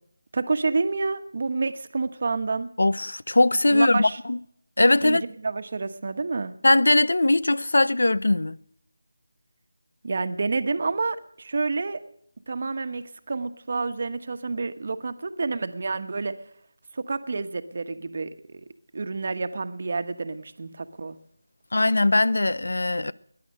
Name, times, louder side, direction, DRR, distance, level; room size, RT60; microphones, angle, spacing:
voice 1, 0.3-2.7 3.7-4.2 5.0-6.5 10.0-12.0 12.5-16.3 16.9-18.6 18.9-21.2, right 3 dB, 45° right, 1.1 m, -29 dB
voice 2, 2.8-4.4 4.8-5.2 6.6-8.6 21.7-23.1, left 2 dB, 75° left, 0.6 m, -20 dB
20.5 x 10.5 x 6.5 m
figure-of-eight pair, 170°, 0 cm